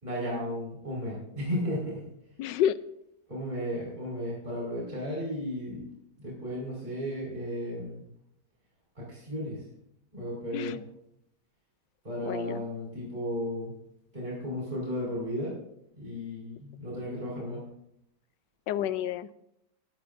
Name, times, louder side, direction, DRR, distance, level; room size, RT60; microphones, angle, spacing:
voice 1, 0.0-2.0 3.3-5.8 6.2-8.0 8.9-9.6 10.1-10.8 12.0-13.7 14.1-15.5 16.0-17.6, equal, 25° right, -6 dB, 5.1 m, -34 dB
voice 2, 2.4-2.8 10.5-10.8 12.3-12.6 18.7-19.3, left 10 dB, 85° left, 15 dB, 1.3 m, -29 dB
21.0 x 12.5 x 2.6 m, 0.78 s
omnidirectional pair, 1.9 m